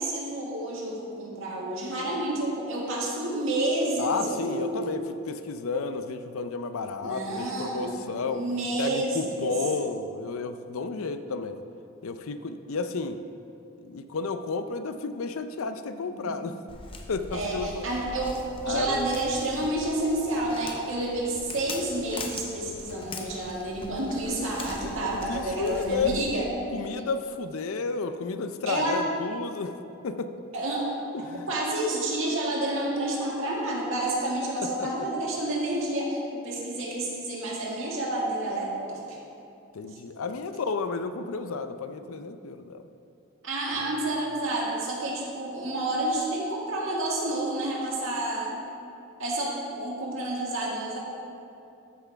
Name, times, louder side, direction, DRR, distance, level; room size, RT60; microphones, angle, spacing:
voice 1, 0.0-5.0 7.0-8.0 8.3-9.5 16.0-16.4 17.3-18.4 18.7-26.5 28.7-29.0 30.5-30.9 31.5-39.2 39.9-40.0 41.9-42.0 43.4-48.6 49.2-51.0, right 1 dB, 65° right, -4 dB, 1.9 m, -29 dB
voice 2, 4.0-8.4 8.8-11.6 12.0-13.2 13.8-16.6 17.1-17.9 18.6-19.1 24.8-26.2 26.7-29.8 30.0-30.3 31.1-31.5 34.8-35.1 39.7-42.9 43.8-43.9, left 4 dB, 80° left, 9 dB, 0.5 m, -32 dB
Walk footsteps, 16.7-26.3, left 2 dB, 25° left, 0.6 m, -42 dB
13.5 x 5.9 x 3.4 m, 2.7 s
head